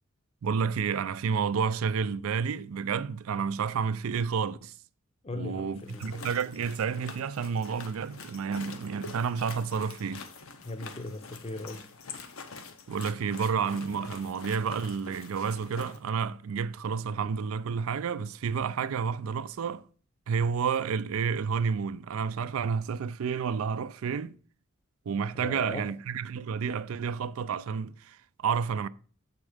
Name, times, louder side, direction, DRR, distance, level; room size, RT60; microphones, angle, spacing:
voice 1, 0.4-4.7 5.3-10.3 12.9-19.9 20.3-24.4 25.1-28.9, right 6 dB, 85° right, 0.4 m, -30 dB
voice 2, 5.2-6.1 10.6-11.9 25.3-25.9, left 2 dB, 30° left, 0.6 m, -38 dB
sound 1, 5.8-16.0, left 4 dB, 75° left, 0.9 m, -46 dB
7.2 x 4.4 x 4.9 m
head